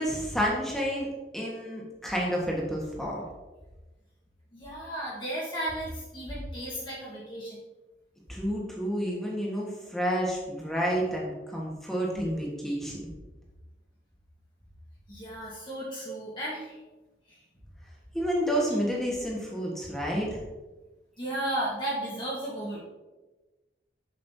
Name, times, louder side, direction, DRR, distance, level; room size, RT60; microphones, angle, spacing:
voice 1, 0.0-3.2 8.3-13.0 18.1-20.4, equal, ahead, -4 dB, 1.4 m, -30 dB
voice 2, 4.5-7.6 15.1-16.8 17.3-17.4 21.2-22.8, right 1 dB, 25° left, -6 dB, 1.4 m, -34 dB
7.2 x 6.6 x 2.7 m, 1.2 s
head